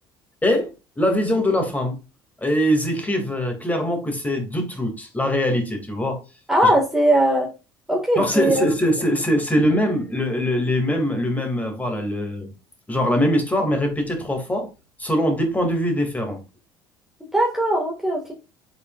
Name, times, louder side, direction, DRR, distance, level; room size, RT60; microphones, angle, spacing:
voice 1, 1.0-1.9 2.4-6.2 8.2-12.5 12.9-14.7 15.0-16.4, equal, 15° left, 2.9 m, -22 dB
voice 2, 6.5-7.5 7.9-8.7 17.3-18.3, right 1 dB, 5° right, 2.2 m, -19 dB
7.9 x 5.8 x 2.6 m
figure-of-eight pair, 60°, 11 cm